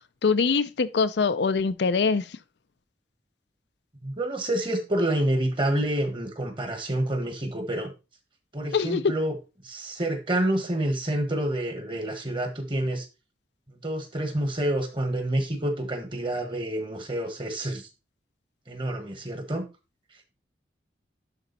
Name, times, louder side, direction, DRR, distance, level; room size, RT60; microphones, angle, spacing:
voice 1, 0.2-2.3 8.7-9.0, left 5 dB, 70° left, 0.5 m, -23 dB
voice 2, 4.0-7.9 8.5-9.3 9.6-13.1 13.7-17.9 18.7-19.6, right 1 dB, 25° right, 1.5 m, -28 dB
11.0 x 4.0 x 4.1 m
head